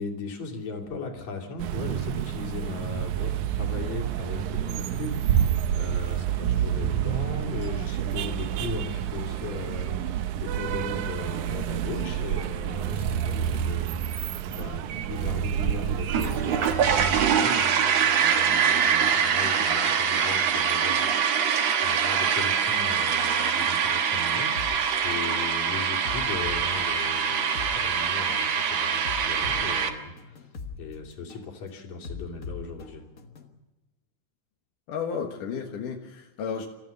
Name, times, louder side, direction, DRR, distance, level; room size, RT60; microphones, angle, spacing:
voice 1, 0.0-21.4 21.8-30.5 30.8-33.1, left 4 dB, 60° left, 2 dB, 4.2 m, -38 dB
sound 1, 1.6-17.4, right 10 dB, 75° right, 2.3 m, -29 dB
sound 2, 16.1-29.9, right 7 dB, 60° right, 2.5 m, -24 dB
sound 3, 24.5-24.8 25.3-25.5 26.0-27.8 28.3-28.5 29.0-30.8 31.3-31.5 32.0-33.5, left 5 dB, 40° left, 1.4 m, -40 dB
voice 2, 34.9-36.7, left 6 dB, 85° left, 1 dB, 3.1 m, -32 dB
29.0 x 14.0 x 6.7 m, 1.1 s
omnidirectional pair, 3.6 m